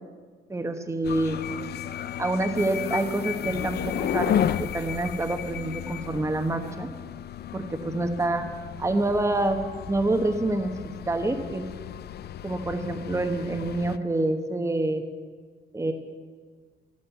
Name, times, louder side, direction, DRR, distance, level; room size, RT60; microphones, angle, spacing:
voice 1, 0.5-1.4 2.2-6.9 7.5-8.4 8.8-9.6 9.9-11.6 12.4-15.0 15.7-15.9, right 2 dB, 15° right, 5 dB, 1.1 m, -27 dB
sound 1, 1.0-14.0, left 10 dB, 55° left, 0.5 m, -33 dB
11.5 x 9.5 x 8.2 m, 1.5 s
cardioid pair, 90°, 20 cm